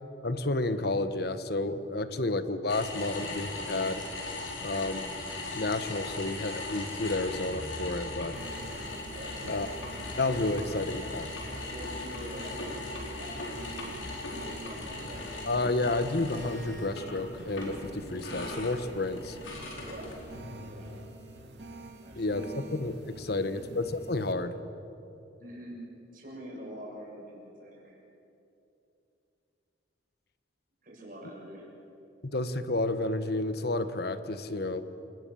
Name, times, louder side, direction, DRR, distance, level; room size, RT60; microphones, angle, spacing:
voice 1, 0.2-4.0 4.6-5.1 5.5-8.4 9.5-9.7 10.2-11.3 15.5-19.4 22.2-24.6 32.3-34.8, left 2 dB, 55° left, 11 dB, 1.1 m, -31 dB
sound 1, 2.7-20.4, left 2 dB, 90° left, 4.8 m, -39 dB
sound 2, 8.3-24.3, right 2 dB, 65° right, 2.3 m, -47 dB
voice 2, 9.1-9.7 10.5-10.9 11.7-13.4 14.4-15.9 19.8-20.1 20.7-20.9 22.0-22.6 23.5-23.7 25.4-25.8 26.1-28.0 30.8-31.7, equal, 45° right, -3 dB, 6.9 m, -45 dB
28.5 x 19.0 x 7.0 m, 2.8 s
head